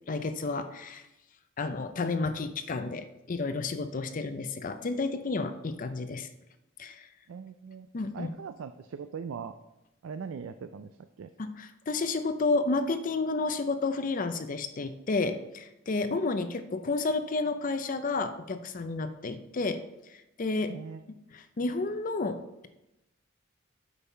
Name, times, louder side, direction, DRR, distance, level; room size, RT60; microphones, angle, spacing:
voice 1, 0.1-1.0 1.6-6.3 6.8-7.1 7.9-8.3 11.4-19.8 20.1-20.8 21.3-22.7, left 3 dB, 40° left, 10 dB, 0.5 m, -31 dB
voice 2, 7.3-7.9 8.1-9.6 10.0-11.3 16.1-16.3 20.7-21.0, right 6 dB, 75° right, 9 dB, 0.4 m, -40 dB
8.3 x 5.4 x 4.5 m, 0.92 s
head